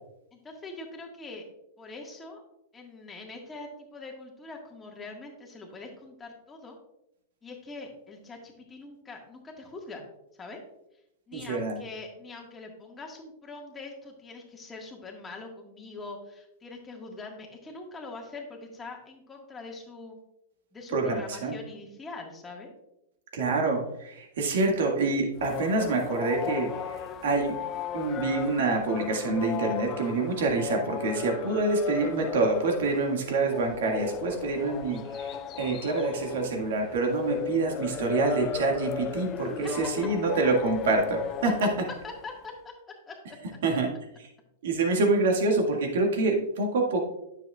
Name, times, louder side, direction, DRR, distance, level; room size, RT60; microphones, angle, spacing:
voice 1, 0.3-1.4 1.8-2.4 2.7-6.8 7.4-10.0 10.4-10.6 11.3-20.2 20.7-22.7 39.6-39.7 41.4-41.5 42.0-43.4, left 3 dB, 15° left, 1 dB, 1.7 m, -43 dB
voice 2, 11.3-11.8 20.9-21.5 23.3-27.6 27.9-41.7 43.6-43.9 44.2-44.3 44.6-47.1, right 3 dB, 70° right, 2 dB, 1.9 m, -26 dB
sound 1, 25.4-42.4, left 8 dB, 30° left, 0.4 m, -36 dB
9.6 x 7.1 x 2.4 m, 0.84 s
hypercardioid pair, 130°, 0 cm